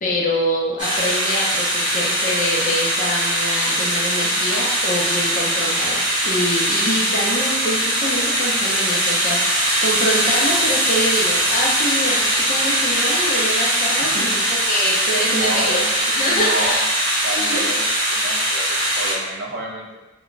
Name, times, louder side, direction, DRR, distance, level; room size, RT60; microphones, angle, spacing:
voice 1, 0.0-14.4 14.7-16.9 17.4-17.7, left 1 dB, 40° left, -3 dB, 0.6 m, -25 dB
sound 1, 0.8-19.1, right 1 dB, 25° right, 0.9 m, -21 dB
voice 2, 13.9-14.7 15.2-16.9 17.2-20.0, right 2 dB, 60° right, -1 dB, 0.5 m, -30 dB
2.2 x 2.2 x 3.8 m, 1.1 s
head